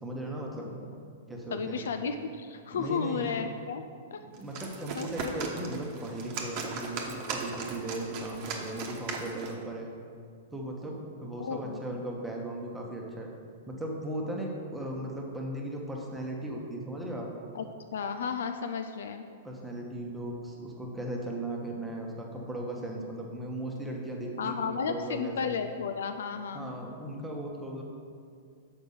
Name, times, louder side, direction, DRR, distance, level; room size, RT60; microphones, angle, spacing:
voice 1, 0.0-0.7 1.3-1.8 2.7-3.3 4.2-9.9 10.5-13.3 13.7-17.3 19.4-24.6 24.9-25.5 26.5-27.8, right 1 dB, 5° right, -1 dB, 1.0 m, -37 dB
voice 2, 1.5-3.8 4.1-4.2 5.0-5.4 11.4-11.8 17.5-17.6 17.9-19.2 24.4-26.7, left 6 dB, 80° left, 7 dB, 0.4 m, -33 dB
sound 1, 4.3-9.6, right 4 dB, 40° right, 1.0 m, -38 dB
6.7 x 5.3 x 5.5 m, 2.3 s
hypercardioid pair, 145°, 0 cm